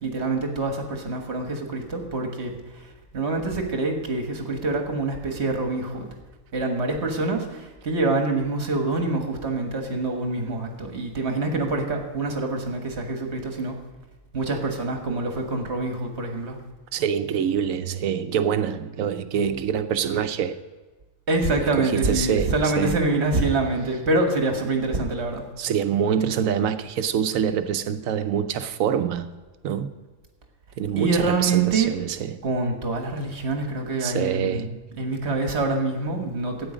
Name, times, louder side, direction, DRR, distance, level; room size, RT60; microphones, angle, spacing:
voice 1, 0.0-2.8 3.1-6.1 6.5-13.8 14.3-16.6 21.3-25.5 31.0-31.9 32.4-36.7, right 3 dB, 55° right, 1.7 m, -25 dB
voice 2, 16.9-20.6 21.8-23.0 25.6-29.3 29.6-29.9 30.8-32.3 34.0-34.7, right 8 dB, 90° right, 1.1 m, -25 dB
12.5 x 8.9 x 5.0 m
omnidirectional pair, 1.4 m